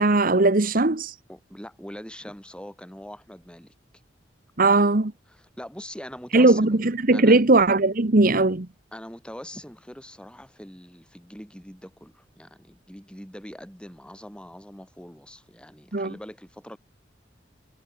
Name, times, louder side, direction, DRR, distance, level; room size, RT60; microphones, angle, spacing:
voice 1, 0.0-1.1 4.6-5.1 6.3-8.7 15.9-16.1, right 2 dB, 50° right, 1.3 m, -19 dB
voice 2, 1.3-3.7 5.3-7.4 8.9-16.8, equal, 5° left, 6.0 m, -42 dB
head